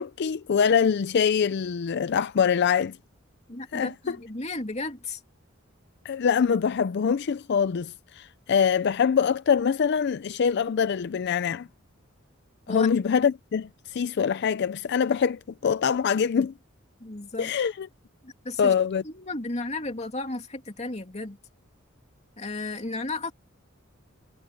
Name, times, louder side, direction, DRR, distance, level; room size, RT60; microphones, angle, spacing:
voice 1, 0.0-2.9 3.7-4.2 6.0-11.7 12.7-16.5 17.4-17.9 18.6-19.0, left 7 dB, 55° left, 0.4 m, -24 dB
voice 2, 3.5-5.2 12.7-12.9 17.0-17.5 18.2-18.7 19.0-21.4 22.4-23.3, left 2 dB, 35° left, 2.7 m, -34 dB
head